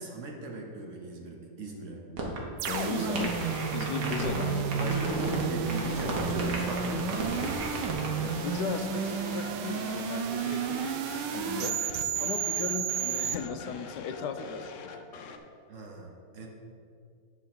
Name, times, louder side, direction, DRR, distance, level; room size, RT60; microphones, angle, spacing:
voice 1, 0.0-2.0 3.0-3.1 4.8-7.1 15.7-16.5, right 2 dB, 55° right, 1 dB, 1.2 m, -37 dB
sound 1, 2.2-2.4 2.7-2.8 3.1-4.4 4.7-5.4 5.7-8.1, right 3 dB, 70° right, 1.8 m, -34 dB
sound 2, 2.6-13.4, right 7 dB, 90° right, 1.2 m, -32 dB
voice 2, 2.7-3.3 3.7-5.0 8.2-11.1 11.3-14.9, left 6 dB, 85° left, 8 dB, 1.2 m, -36 dB
sound 3, 2.7-3.8 4.1-7.8 8.1-15.4, left 5 dB, 65° left, 0.8 m, -45 dB
10.0 x 3.7 x 6.1 m, 2.4 s
omnidirectional pair, 1.8 m